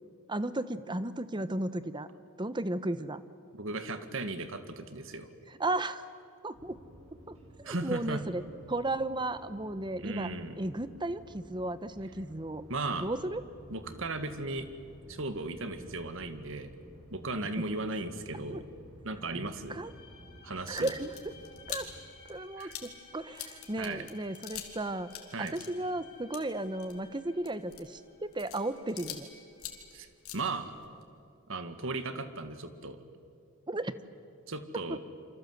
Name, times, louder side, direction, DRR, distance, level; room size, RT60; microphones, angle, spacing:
voice 1, 0.3-2.1 2.4-3.2 5.5-6.1 6.4-6.8 7.3-7.4 7.6-8.4 8.7-10.3 10.6-12.7 13.0-13.4 17.6-17.7 18.5-18.6 19.3-19.9 20.7-21.3 21.7-21.9 22.3-29.3 33.7-33.9, right 2 dB, 20° right, 13 dB, 0.9 m, -34 dB
voice 2, 3.5-5.3 7.7-8.2 10.0-10.6 12.7-13.1 13.7-14.7 15.1-16.7 17.1-18.6 19.0-19.8 20.4-20.9 22.6-22.8 23.8-24.0 25.3-25.5 29.9-30.1 30.3-30.7 31.5-33.0 34.5-35.0, right 2 dB, 60° right, 9 dB, 1.8 m, -36 dB
sound 1, 6.5-22.0, equal, 80° right, 7.3 m, -53 dB
sound 2, 19.8-29.9, left 4 dB, 50° left, 7.2 m, -57 dB
sound 3, 20.5-24.8 25.1-29.3 29.5-31.0, left 10 dB, 80° left, 3.2 m, -45 dB
28.5 x 25.5 x 8.0 m, 2.4 s
head